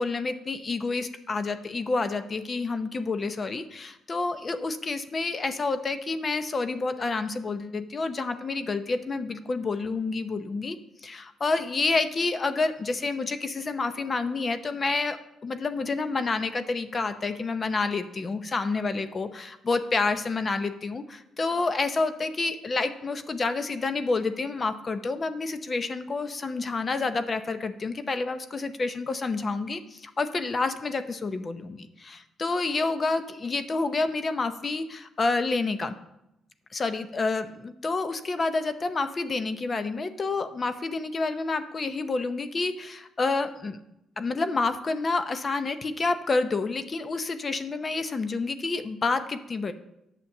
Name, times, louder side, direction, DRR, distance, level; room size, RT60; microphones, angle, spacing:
voice 1, 0.0-10.8 11.0-35.9 36.7-43.8 44.2-49.7, left 3 dB, 35° left, 10 dB, 0.7 m, -29 dB
8.8 x 6.9 x 7.1 m, 0.86 s
cardioid pair, 90°, 0 cm